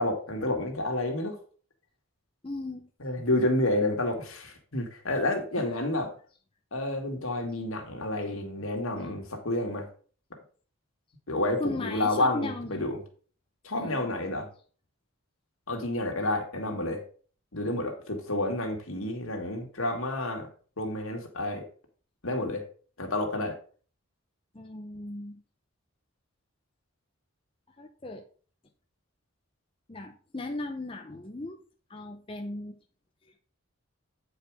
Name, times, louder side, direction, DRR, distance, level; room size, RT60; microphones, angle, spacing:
voice 1, 0.0-1.4 3.0-6.1 6.7-9.9 11.3-13.0 13.6-14.5 15.7-17.0 17.5-20.5 20.8-21.6 22.2-22.6 23.0-23.5, left 1 dB, 75° left, 3 dB, 1.9 m, -29 dB
voice 2, 2.4-2.9 11.6-12.8 13.8-14.1 24.5-25.4 27.8-28.2 29.9-31.6 31.9-32.8, left 2 dB, 25° left, 3 dB, 0.6 m, -37 dB
8.5 x 4.8 x 4.8 m, 0.42 s
head